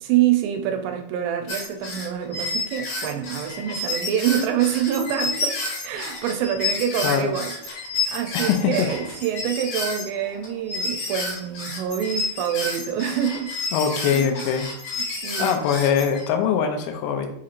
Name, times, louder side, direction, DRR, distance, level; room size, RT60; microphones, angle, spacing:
voice 1, 0.0-7.5 8.1-13.5 13.9-14.4 15.0-15.6, right 10 dB, 85° right, 2.7 m, -26 dB
sound 1, 1.5-16.2, left 3 dB, 65° left, 2.0 m, -30 dB
voice 2, 8.3-8.9 13.7-14.7 15.4-17.3, left 8 dB, 85° left, 2.1 m, -22 dB
6.3 x 2.9 x 2.4 m
omnidirectional pair, 4.8 m